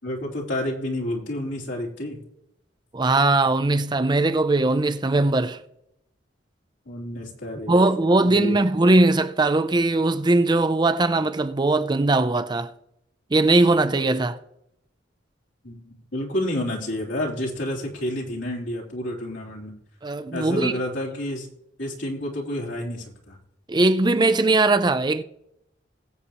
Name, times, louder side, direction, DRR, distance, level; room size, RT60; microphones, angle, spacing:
voice 1, 0.0-2.2 6.8-7.7 8.2-8.6 15.6-19.7 20.3-21.5 21.8-23.4, left 1 dB, 80° left, 3.3 m, -29 dB
voice 2, 2.9-5.6 7.7-12.7 13.3-14.4 20.0-20.7 23.7-25.2, right 2 dB, 25° right, 0.5 m, -20 dB
21.0 x 8.3 x 3.0 m
head